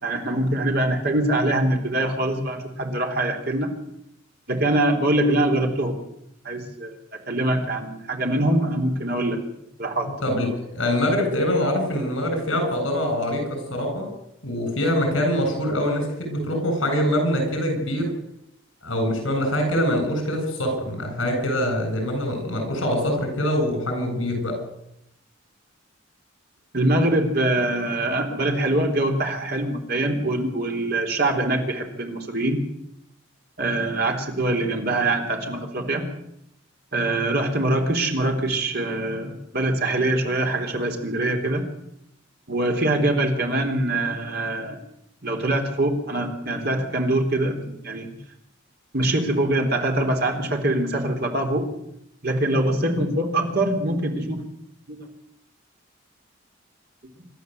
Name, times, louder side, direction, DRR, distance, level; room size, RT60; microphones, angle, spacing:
voice 1, 0.0-3.7 4.5-6.0 6.4-6.9 7.3-9.4 9.8-10.1 26.7-32.6 33.6-36.1 36.9-41.6 42.5-44.8 45.2-48.1 48.9-51.7 52.2-54.4 54.9-55.1, right 1 dB, 50° right, 2 dB, 3.8 m, -23 dB
voice 2, 10.2-14.1 14.4-18.2 18.8-24.6, equal, 75° left, 5 dB, 7.9 m, -24 dB
26.5 x 12.5 x 8.0 m, 0.79 s
head